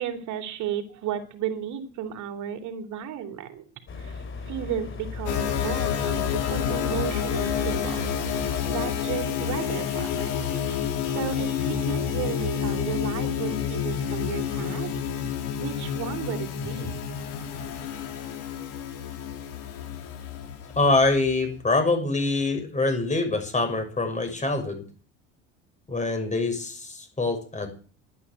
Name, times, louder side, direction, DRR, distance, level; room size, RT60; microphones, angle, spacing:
voice 1, 0.0-3.6 4.0-8.1 8.7-14.9 15.6-17.1, right 9 dB, 65° right, 6 dB, 2.9 m, -34 dB
sound 1, 3.9-8.9, left 4 dB, 40° left, 3.2 m, -36 dB
sound 2, 5.3-21.6, left 8 dB, 75° left, 3.9 m, -29 dB
voice 2, 20.8-24.8 25.9-27.7, left 3 dB, 20° left, 6 dB, 6.1 m, -24 dB
11.5 x 10.0 x 8.2 m, 0.41 s
supercardioid pair, 75°, 32 cm